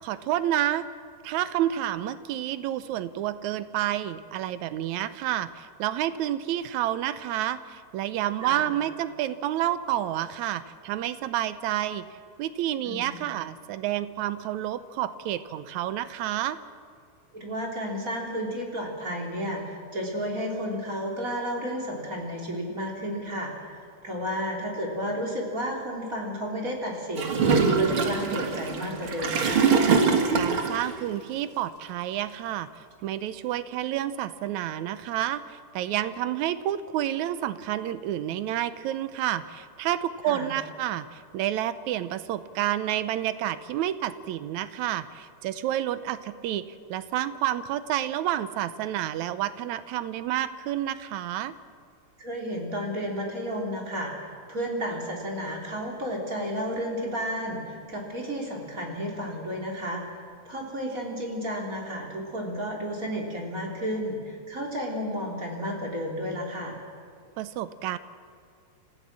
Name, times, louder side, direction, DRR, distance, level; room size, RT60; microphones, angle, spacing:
voice 1, 0.0-0.9 1.2-12.1 12.4-16.6 30.3-46.6 46.9-51.5 67.4-68.0, right 12 dB, 80° right, 13 dB, 2.1 m, -29 dB
voice 2, 17.3-29.7 40.2-40.5 52.2-60.2 60.5-66.8, equal, 30° right, -1 dB, 3.7 m, -32 dB
Gurgling / Toilet flush, 27.2-30.9, right 5 dB, 50° right, 2.3 m, -23 dB
27.0 x 15.0 x 7.5 m, 2.3 s
omnidirectional pair, 3.3 m